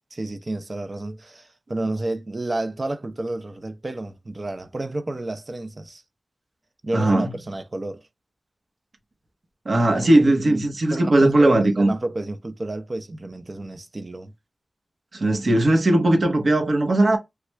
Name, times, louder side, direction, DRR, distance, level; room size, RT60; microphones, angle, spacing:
voice 1, 0.1-6.0 6.8-8.1 9.9-14.3, right 2 dB, 40° right, 0.5 m, -31 dB
voice 2, 6.9-7.3 9.6-11.9 15.1-17.2, right 1 dB, 65° right, 1.0 m, -18 dB
3.3 x 2.4 x 3.1 m
wide cardioid pair, 70°, 0 cm